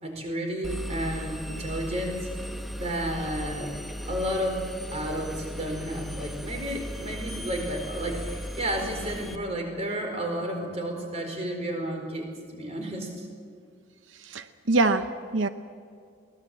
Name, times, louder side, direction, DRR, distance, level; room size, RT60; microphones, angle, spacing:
voice 1, 0.0-2.3 2.7-3.8 4.1-4.6 4.9-13.3, equal, 35° right, 3 dB, 4.5 m, -32 dB
Engine, 0.6-9.4, equal, ahead, 0.9 m, -37 dB
voice 2, 14.1-15.5, right 3 dB, 80° right, 10 dB, 0.8 m, -25 dB
23.5 x 19.0 x 7.9 m, 2.3 s
head